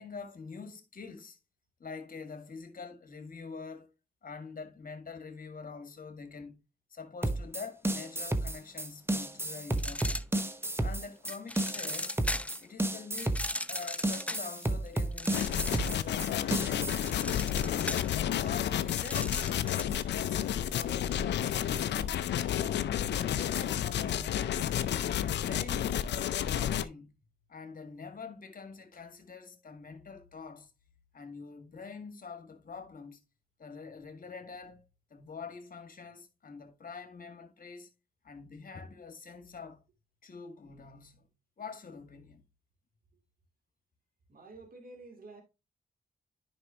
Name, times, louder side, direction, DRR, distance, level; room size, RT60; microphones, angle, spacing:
voice 1, 0.0-1.4 1.8-3.9 4.2-6.6 6.9-10.3 10.8-12.2 12.6-13.4 13.7-17.2 17.6-18.0 18.4-19.3 19.7-22.2 22.5-24.7 25.1-27.1 27.5-30.7 31.1-33.2 33.6-34.8 35.1-37.9 38.2-39.8 40.2-41.3 41.6-42.4, left 5 dB, 55° left, 1.9 m, -45 dB
sound 1, 7.2-17.1, right 1 dB, 15° right, 1.0 m, -32 dB
sound 2, 9.7-10.8 11.3-12.6 13.2-16.1 16.4-20.0, left 1 dB, 5° left, 0.6 m, -38 dB
sound 3, 15.3-26.9, left 10 dB, 85° left, 0.5 m, -31 dB
voice 2, 44.3-45.4, right 2 dB, 55° right, 2.8 m, -50 dB
9.8 x 5.3 x 2.8 m
cardioid pair, 55°, 18 cm